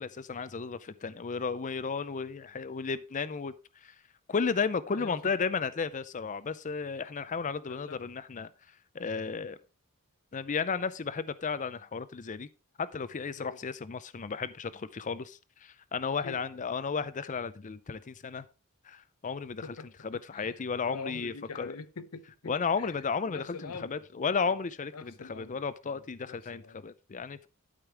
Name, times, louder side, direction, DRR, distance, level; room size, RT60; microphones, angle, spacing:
voice 1, 0.0-3.5 3.8-3.9 4.3-8.5 8.9-9.6 10.3-12.5 12.8-18.4 18.9-19.7 20.0-21.7 22.5-27.5, left 5 dB, 35° left, 0.5 m, -33 dB
voice 2, 5.0-5.3 7.7-8.1 13.4-13.6 16.2-16.4 19.6-20.6 20.9-22.9 23.3-24.3 24.9-25.6 25.8-26.8, left 4 dB, 85° left, 0.9 m, -45 dB
12.5 x 5.3 x 4.6 m
head